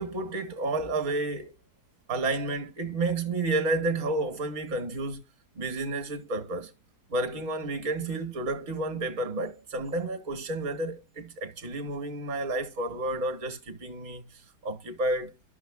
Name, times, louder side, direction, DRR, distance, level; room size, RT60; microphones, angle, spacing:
voice 1, 0.0-1.5 2.1-5.2 5.5-6.7 7.1-15.3, right 2 dB, 50° right, 1.7 m, -31 dB
12.5 x 6.1 x 2.3 m
omnidirectional pair, 1.8 m